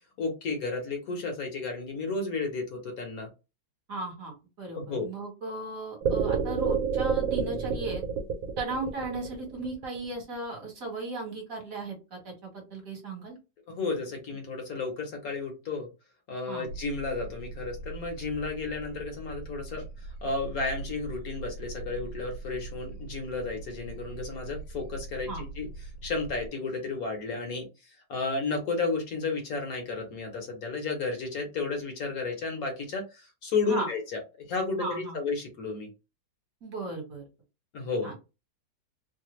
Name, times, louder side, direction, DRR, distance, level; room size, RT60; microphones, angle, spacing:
voice 1, 0.2-3.3 4.7-5.0 13.7-15.9 16.3-25.7 26.0-35.9 37.7-38.1, left 4 dB, 60° left, 2 dB, 1.1 m, -33 dB
voice 2, 3.9-8.0 8.6-13.4 16.5-16.7 25.3-25.4 33.7-33.9 34.8-35.2 36.6-37.2 38.0-38.1, right 2 dB, 50° right, 1 dB, 1.5 m, -36 dB
sound 1, 6.0-10.2, right 6 dB, 85° right, 1.4 m, -28 dB
sound 2, 16.7-26.5, right 3 dB, 85° left, 1.3 m, -41 dB
3.3 x 2.1 x 3.0 m, 0.28 s
omnidirectional pair, 2.0 m